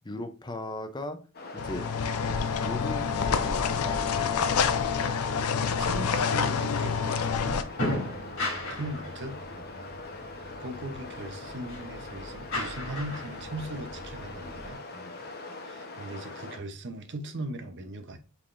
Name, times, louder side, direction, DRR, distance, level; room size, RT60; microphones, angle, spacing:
voice 1, 0.0-1.2 1.5-1.9 2.6-5.0 9.5-9.6 14.9-15.3, left 1 dB, 20° left, 0.6 m, -39 dB
sound 1, 1.3-16.6, left 3 dB, 45° left, 0.9 m, -42 dB
sound 2, 1.6-7.6, left 6 dB, 80° left, 0.5 m, -27 dB
voice 2, 5.5-7.6 8.7-9.4 10.3-14.8 15.6-18.2, right 1 dB, 55° right, 0.8 m, -39 dB
sound 3, 6.5-14.7, left 1 dB, 60° left, 2.5 m, -37 dB
5.6 x 3.5 x 2.5 m
head